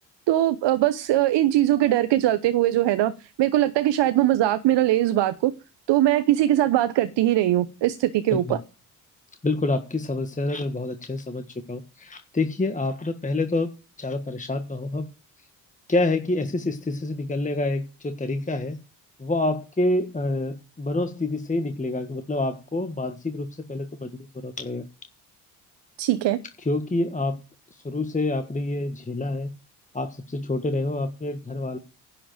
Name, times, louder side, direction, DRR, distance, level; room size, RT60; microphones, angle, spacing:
voice 1, 0.3-5.5 5.9-8.6 26.0-26.4, right 14 dB, 60° right, 1.0 m, -21 dB
voice 2, 9.4-13.7 14.0-15.1 15.9-18.8 19.2-24.8 26.6-27.4 27.7-29.5 29.9-31.8, left 2 dB, 15° left, 1.4 m, -27 dB
11.0 x 5.0 x 7.7 m
hypercardioid pair, 50°, 48 cm